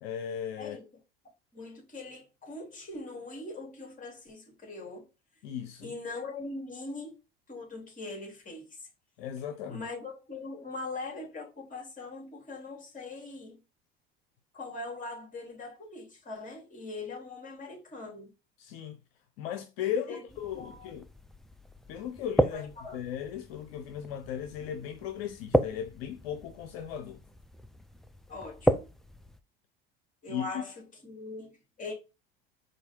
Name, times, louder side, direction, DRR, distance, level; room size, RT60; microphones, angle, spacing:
voice 1, 0.0-0.8 5.4-5.9 9.2-9.9 18.6-19.0 19.4-21.1 21.9-27.2 30.3-30.6, left 9 dB, 75° left, 0.7 m, -37 dB
voice 2, 1.5-5.1 5.8-7.1 7.5-8.7 9.7-13.6 14.5-18.3 20.1-20.2 20.5-20.9 22.5-23.0 28.3-28.9 30.2-30.7 31.0-31.9, left 3 dB, 25° left, 2.8 m, -41 dB
sound 1, 20.3-29.4, equal, ahead, 0.4 m, -34 dB
4.6 x 2.6 x 4.4 m
hypercardioid pair, 75°, 30 cm